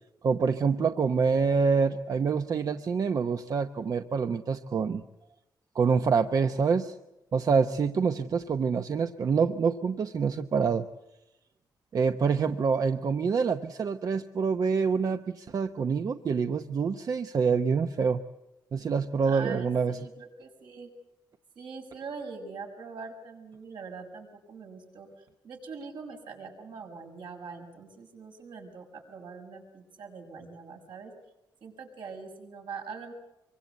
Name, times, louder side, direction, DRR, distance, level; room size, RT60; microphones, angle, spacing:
voice 1, 0.2-5.0 5.7-6.9 7.3-10.8 11.9-18.2 18.7-20.0, right 5 dB, 50° right, 8 dB, 0.9 m, -26 dB
voice 2, 19.2-20.9 21.5-31.1 31.6-33.1, right 5 dB, 75° right, 2 dB, 6.5 m, -43 dB
25.0 x 24.0 x 8.2 m, 0.94 s
wide cardioid pair, 130°, 8 cm